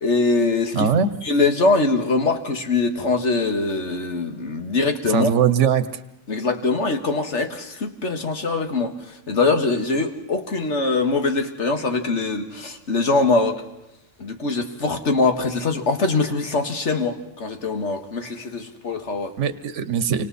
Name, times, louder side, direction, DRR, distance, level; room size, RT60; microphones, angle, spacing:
voice 1, 0.0-0.9 1.2-5.3 6.3-13.6 14.2-19.3, left 3 dB, 65° left, 5 dB, 2.1 m, -22 dB
voice 2, 0.7-1.1 5.1-5.9 19.4-20.3, right 7 dB, 75° right, 12 dB, 1.3 m, -20 dB
29.0 x 25.5 x 4.2 m, 0.87 s
omnidirectional pair, 1.3 m